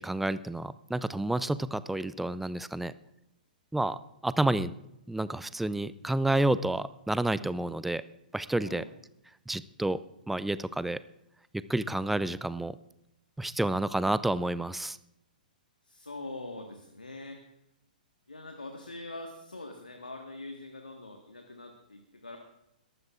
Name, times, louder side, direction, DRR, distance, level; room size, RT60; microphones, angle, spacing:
voice 1, 0.0-2.9 3.7-4.7 5.1-8.0 8.3-8.8 9.5-10.0 10.3-11.0 11.7-12.8 13.4-15.0, right 2 dB, 5° right, 16 dB, 0.4 m, -29 dB
voice 2, 15.8-17.4 18.3-22.4, left 2 dB, 80° left, 3 dB, 1.5 m, -43 dB
22.0 x 15.0 x 2.5 m, 0.82 s
figure-of-eight pair, 115°, 5 cm